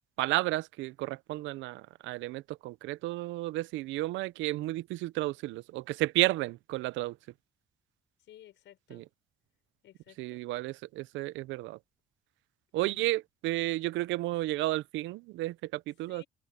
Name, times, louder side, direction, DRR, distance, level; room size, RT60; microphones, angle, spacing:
voice 1, 0.2-7.2 8.9-9.0 10.2-11.8 12.7-16.2, right 18 dB, 80° right, 0.8 m, -32 dB
voice 2, 8.2-9.0 9.8-10.4 12.7-13.1 16.1-16.3, left 12 dB, 75° left, 5.9 m, -55 dB
supercardioid pair, 65°, 19 cm